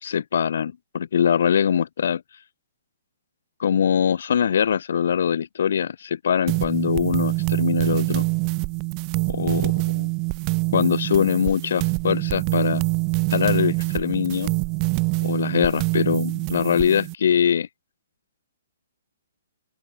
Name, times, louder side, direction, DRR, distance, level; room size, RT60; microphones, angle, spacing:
voice 1, 0.0-2.2 3.6-8.3 9.3-10.1 10.7-12.8 13.3-14.5 15.2-17.7, left 8 dB, 65° left, 3.8 m, -22 dB
sound 1, 6.5-17.1, right 35 dB, 30° right, 1.8 m, -25 dB
open air
hypercardioid pair, 150°, 0 cm